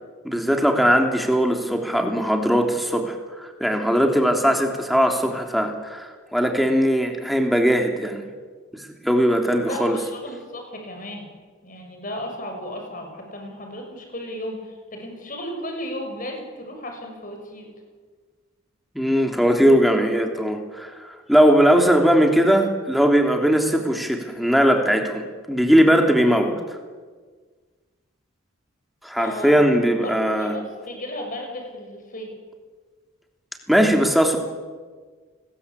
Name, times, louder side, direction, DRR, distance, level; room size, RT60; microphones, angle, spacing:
voice 1, 0.2-8.2 9.0-10.0 18.9-20.9 21.3-26.6 29.0-30.5 33.7-34.4, equal, ahead, 3 dB, 3.1 m, -19 dB
voice 2, 9.6-11.3 11.6-17.7 29.2-32.3, left 1 dB, 40° left, 3 dB, 6.7 m, -34 dB
30.0 x 21.0 x 8.6 m, 1.5 s
head